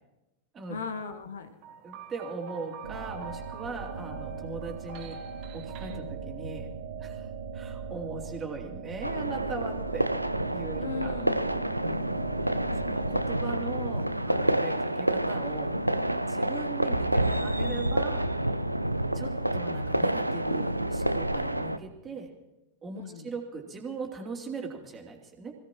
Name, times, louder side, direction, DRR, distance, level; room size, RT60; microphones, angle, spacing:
voice 1, 0.7-1.6 5.9-6.1 10.8-11.6 22.9-23.3, left 5 dB, 65° left, 8 dB, 1.7 m, -38 dB
sound 1, 1.6-6.0, right 5 dB, 45° right, 1.7 m, -45 dB
voice 2, 1.8-5.2 5.5-6.7 7.0-7.3 7.5-10.1 10.5-11.1 12.4-15.7 16.3-18.3 19.1-22.3 22.8-25.5, right 4 dB, 20° right, 1 dB, 3.0 m, -39 dB
sound 2, 2.8-13.4, right 6 dB, 70° right, 1.2 m, -39 dB
sound 3, 9.0-21.8, right 1 dB, 85° right, 0.6 m, -28 dB
25.5 x 16.5 x 3.1 m, 0.98 s
figure-of-eight pair, 90°, 0 cm